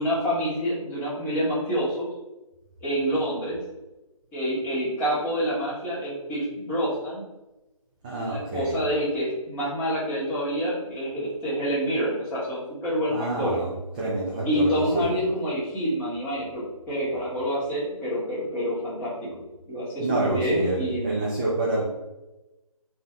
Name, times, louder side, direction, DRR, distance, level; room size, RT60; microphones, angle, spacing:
voice 1, 0.0-2.1 2.8-3.6 4.3-7.2 8.0-13.6 14.4-19.3 19.7-21.2, equal, 10° left, -10 dB, 1.4 m, -27 dB
voice 2, 8.0-8.8 13.1-13.7 14.0-15.1 20.0-21.9, right 2 dB, 15° right, -6 dB, 0.4 m, -27 dB
3.9 x 2.6 x 3.4 m, 1.0 s
figure-of-eight pair, 155°, 18 cm